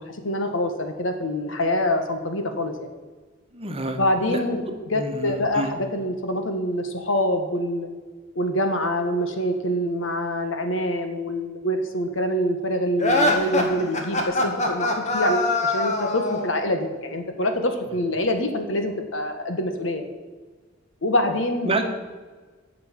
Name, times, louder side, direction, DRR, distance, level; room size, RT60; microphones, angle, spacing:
voice 1, 0.0-2.9 4.0-7.9 8.3-20.1 21.0-21.7, left 1 dB, 70° left, 6 dB, 1.6 m, -25 dB
voice 2, 3.5-4.0 4.2-5.7 21.6-21.8, right 2 dB, 30° right, 5 dB, 1.3 m, -29 dB
sound 1, 13.0-16.5, left 1 dB, 35° left, 1.8 m, -23 dB
9.8 x 6.8 x 9.1 m, 1.3 s
head